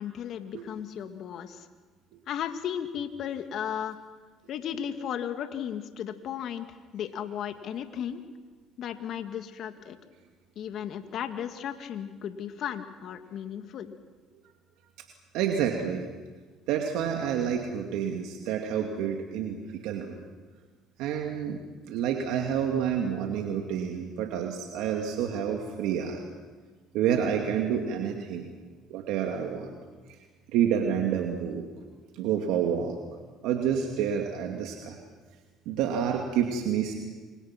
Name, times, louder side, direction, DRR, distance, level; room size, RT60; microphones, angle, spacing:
voice 1, 0.0-1.7 2.3-4.0 4.5-8.2 8.8-10.0 10.6-13.9, left 9 dB, 60° left, 7 dB, 2.2 m, -35 dB
voice 2, 15.3-16.1 16.7-19.6 19.8-20.2 21.0-21.6 21.9-26.2 26.9-28.5 28.9-29.7 30.5-31.6 32.1-33.0 33.4-35.0 35.7-36.9, right 8 dB, 75° right, 2 dB, 2.4 m, -28 dB
29.0 x 25.5 x 6.1 m, 1.4 s
supercardioid pair, 75°, 0 cm